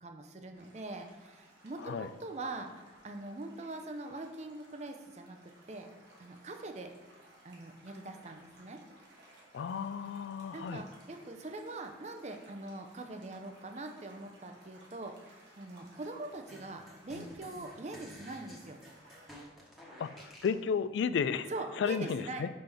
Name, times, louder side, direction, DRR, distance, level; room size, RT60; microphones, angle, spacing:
voice 1, 0.0-5.4 5.7-5.9 6.2-6.9 7.4-8.8 10.5-18.8 21.5-22.5, right 2 dB, 40° right, 5 dB, 0.5 m, -43 dB
sound 1, 0.5-19.4, right 1 dB, 70° right, 1.4 m, -60 dB
voice 2, 9.5-10.8 20.0-21.5 21.8-22.5, left 6 dB, 80° left, 13 dB, 0.3 m, -33 dB
sound 2, 16.5-20.6, equal, ahead, 1.2 m, -51 dB
5.7 x 5.3 x 3.4 m, 1.2 s
head